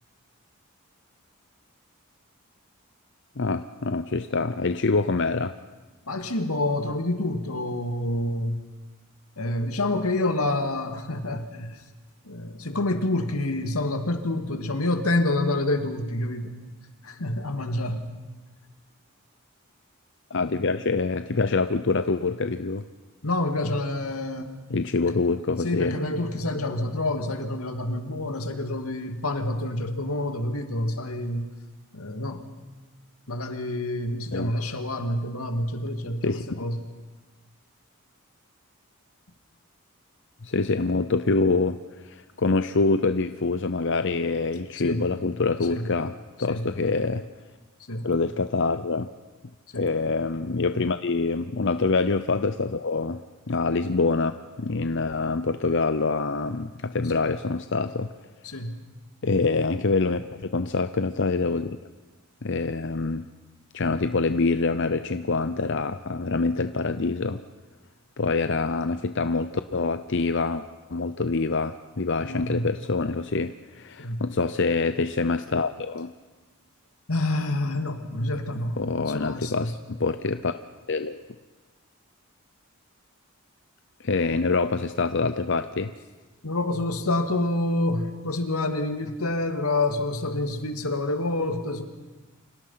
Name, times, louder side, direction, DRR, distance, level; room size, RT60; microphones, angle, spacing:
voice 1, 3.4-5.6 20.3-22.9 24.7-26.0 34.3-34.5 36.2-36.7 40.4-47.3 48.0-49.1 49.8-58.1 59.2-61.8 62.4-63.3 63.7-67.4 68.2-70.6 70.9-76.1 78.8-80.5 80.9-81.2 84.0-85.9, left 3 dB, 55° left, 10 dB, 0.7 m, -25 dB
voice 2, 6.1-8.6 9.4-11.8 12.2-16.6 17.0-18.1 23.2-24.6 25.0-25.1 25.6-31.5 31.9-32.5 33.3-36.8 44.7-45.0 45.7-45.9 46.5-46.7 47.9-48.1 49.7-49.9 57.1-57.2 58.4-58.8 72.2-72.7 74.0-74.2 77.1-79.7 86.4-91.8, left 2 dB, 85° left, 7 dB, 2.4 m, -28 dB
29.5 x 26.0 x 5.8 m, 1.2 s
head